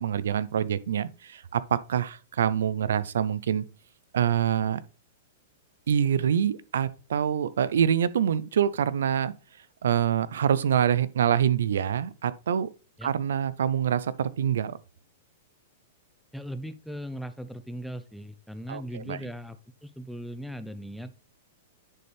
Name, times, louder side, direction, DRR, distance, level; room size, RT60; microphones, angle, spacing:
voice 1, 0.0-3.6 4.1-4.8 5.9-9.3 9.8-12.7 13.0-14.8 18.7-19.2, right 9 dB, 80° right, 0.5 m, -25 dB
voice 2, 16.3-19.6 19.8-21.1, equal, ahead, 0.7 m, -38 dB
9.9 x 4.3 x 3.4 m
hypercardioid pair, 135°, 0 cm